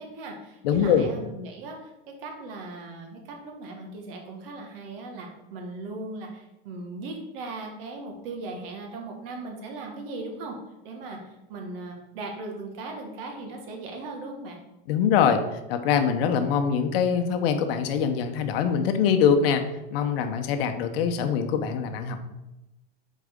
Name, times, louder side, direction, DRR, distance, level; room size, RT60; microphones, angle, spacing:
voice 1, 0.0-1.9 2.2-10.5 10.8-11.2 11.5-14.6, right 2 dB, 65° right, 2 dB, 1.5 m, -38 dB
voice 2, 0.6-1.1 14.9-15.4 15.7-19.6 19.9-22.2, left 7 dB, 70° left, 7 dB, 0.8 m, -23 dB
7.3 x 4.2 x 3.6 m, 0.96 s
supercardioid pair, 160°, 31 cm